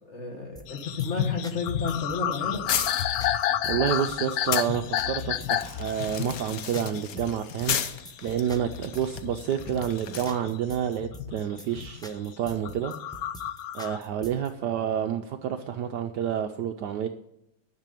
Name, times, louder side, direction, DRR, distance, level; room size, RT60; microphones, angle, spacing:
voice 1, 0.0-2.6 5.3-5.6, left 3 dB, 35° left, 2 dB, 1.9 m, -33 dB
sound 1, 0.6-14.5, equal, 5° left, 0.5 m, -45 dB
sound 2, 0.7-10.6 11.0-12.0 12.5-14.0, left 11 dB, 85° left, 0.8 m, -31 dB
sound 3, 2.7-4.7 5.2-10.4, left 8 dB, 60° left, 1.0 m, -34 dB
voice 2, 3.6-7.8 8.2-12.9 13.7-17.1, right 9 dB, 70° right, 7 dB, 1.0 m, -29 dB
10.5 x 6.8 x 9.2 m, 0.81 s
omnidirectional pair, 2.2 m